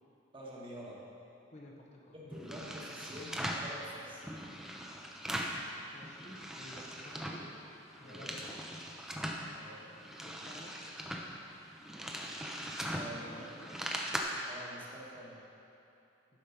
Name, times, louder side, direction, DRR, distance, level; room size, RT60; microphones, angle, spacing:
voice 1, 0.3-1.1 2.1-4.2 8.0-8.3 9.5-10.0 12.9-13.4 14.4-15.4, equal, 25° right, -4 dB, 1.4 m, -48 dB
voice 2, 1.5-2.2 5.9-7.5 8.0-8.6 10.2-10.8 13.2-13.9, left 1 dB, 35° left, -1 dB, 0.8 m, -52 dB
sound 1, 2.3-3.7 4.2-5.6 6.0-7.5 7.8-9.4 9.9-14.2, equal, 5° right, 0.6 m, -40 dB
10.5 x 5.1 x 5.8 m, 2.8 s
head